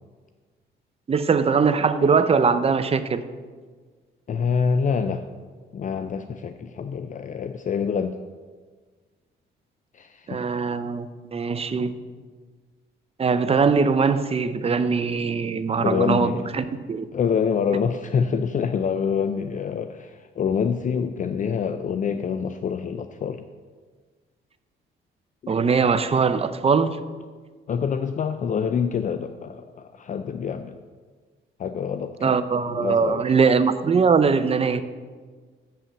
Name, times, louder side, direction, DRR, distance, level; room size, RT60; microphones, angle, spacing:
voice 1, 1.1-3.2 10.3-11.9 13.2-17.1 25.5-27.0 32.2-34.8, right 5 dB, 30° right, 11 dB, 0.6 m, -21 dB
voice 2, 4.3-5.2 5.7-8.2 9.9-10.4 15.8-16.5 17.1-23.4 25.4-25.5 27.7-30.8 31.6-32.4 32.7-33.2, left 6 dB, 40° left, 9 dB, 0.4 m, -26 dB
7.3 x 5.6 x 6.9 m, 1.5 s
cardioid pair, 90°, 20 cm